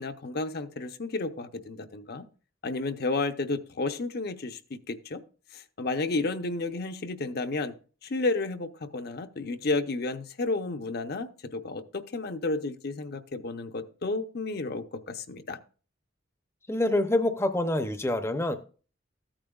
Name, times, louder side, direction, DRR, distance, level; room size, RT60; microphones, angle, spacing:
voice 1, 0.0-2.2 2.6-5.2 5.5-7.7 8.0-15.6, left 3 dB, 55° left, 8 dB, 0.7 m, -32 dB
voice 2, 16.7-18.6, left 1 dB, 15° left, 9 dB, 0.6 m, -26 dB
14.5 x 8.8 x 2.4 m, 0.38 s
head